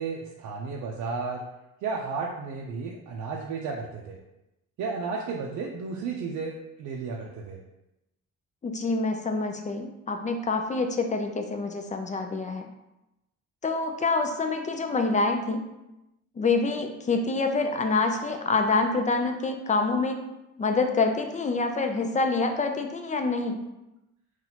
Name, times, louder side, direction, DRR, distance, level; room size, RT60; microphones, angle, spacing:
voice 1, 0.0-1.4 1.8-4.2 4.8-7.6, right 4 dB, 70° right, -1 dB, 0.5 m, -33 dB
voice 2, 8.6-12.7 13.6-15.6 16.4-20.2 20.6-23.6, left 3 dB, 25° left, 5 dB, 0.4 m, -26 dB
4.0 x 2.4 x 2.8 m, 0.92 s
cardioid pair, 90°, 30 cm